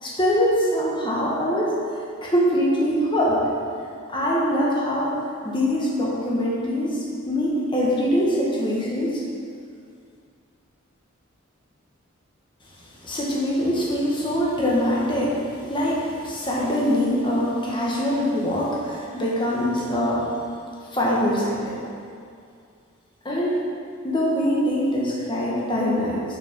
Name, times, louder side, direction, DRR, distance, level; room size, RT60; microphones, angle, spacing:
voice 1, 0.0-1.7 2.2-3.4 4.1-5.1 5.4-9.2 13.0-15.4 15.7-20.2 20.9-21.8 23.2-23.6 24.0-26.2, equal, 25° left, -5 dB, 1.5 m, -23 dB
6.9 x 6.0 x 5.3 m, 2.3 s
head